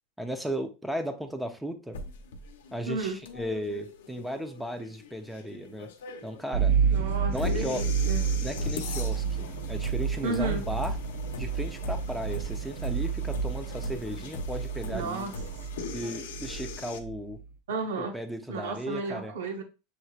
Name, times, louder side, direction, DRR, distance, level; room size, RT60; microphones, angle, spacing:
voice 1, 0.2-2.0 2.7-5.9 6.2-6.7 7.3-7.9 8.4-11.0 11.3-15.3 15.9-17.4 18.0-19.3, equal, 5° right, 0.7 m, -35 dB
sound 1, 1.9-17.0, left 3 dB, 90° left, 0.8 m, -40 dB
voice 2, 2.9-3.2 6.9-8.2 10.2-10.6 14.9-15.4 17.7-18.1 18.5-19.6, right 3 dB, 90° right, 1.0 m, -33 dB
sound 2, 6.5-17.5, right 7 dB, 55° right, 0.6 m, -30 dB
6.7 x 3.0 x 2.4 m
supercardioid pair, 125°, 0 cm